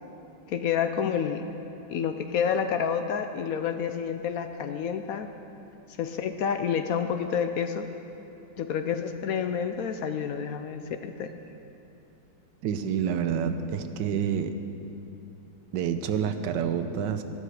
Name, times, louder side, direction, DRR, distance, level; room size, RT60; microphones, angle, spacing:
voice 1, 0.5-1.4 1.9-5.3 6.0-7.9 8.6-11.3, left 7 dB, 70° left, 8 dB, 0.9 m, -29 dB
voice 2, 12.6-14.6 15.7-17.2, right 8 dB, 85° right, 9 dB, 1.4 m, -28 dB
14.0 x 12.5 x 4.9 m, 2.9 s
omnidirectional pair, 1.9 m